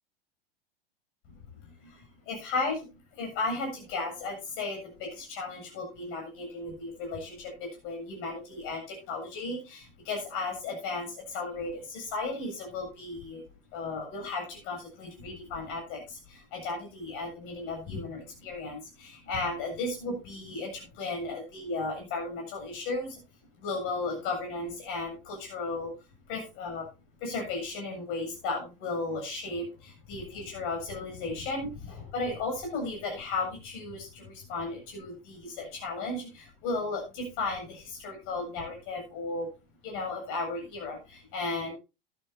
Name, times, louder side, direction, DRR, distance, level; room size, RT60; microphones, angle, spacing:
voice 1, 1.3-13.4 13.7-23.2 23.6-25.9 26.3-26.9 27.2-39.5 39.8-41.7, left 3 dB, 45° left, 2 dB, 7.6 m, -35 dB
13.0 x 13.0 x 2.8 m, 0.28 s
figure-of-eight pair, 90°, 30 cm